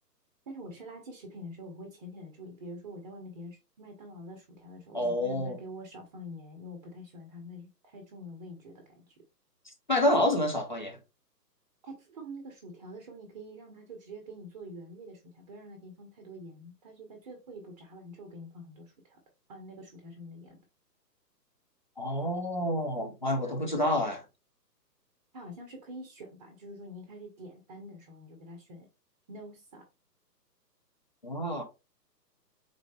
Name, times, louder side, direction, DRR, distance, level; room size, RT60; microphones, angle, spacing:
voice 1, 0.5-9.2 11.8-19.2 19.5-20.6 25.3-28.9 29.3-29.9, equal, 25° right, 0.7 m, -46 dB
voice 2, 4.9-5.6 9.9-11.0 22.0-24.2 31.2-31.6, left 1 dB, 30° left, 0.4 m, -28 dB
3.8 x 3.2 x 2.2 m
figure-of-eight pair, 130°, 50 cm